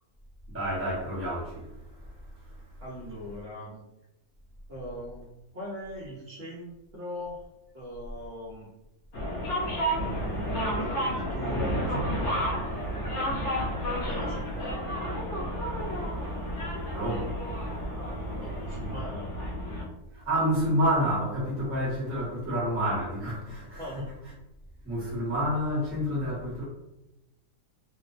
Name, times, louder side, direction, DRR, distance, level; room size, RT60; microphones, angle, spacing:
voice 1, 0.5-1.7 16.9-17.3 20.1-24.1 24.8-26.6, equal, 15° right, 0.5 m, -29 dB
voice 2, 2.8-3.9 4.7-5.3 5.5-7.4 7.7-8.7 10.0-12.5 14.1-14.7 18.4-19.3 23.8-24.0, equal, 60° right, 0.7 m, -40 dB
Zhongshan Station, 9.1-19.8, equal, 60° left, 0.8 m, -31 dB
2.4 x 2.1 x 2.4 m
omnidirectional pair, 1.5 m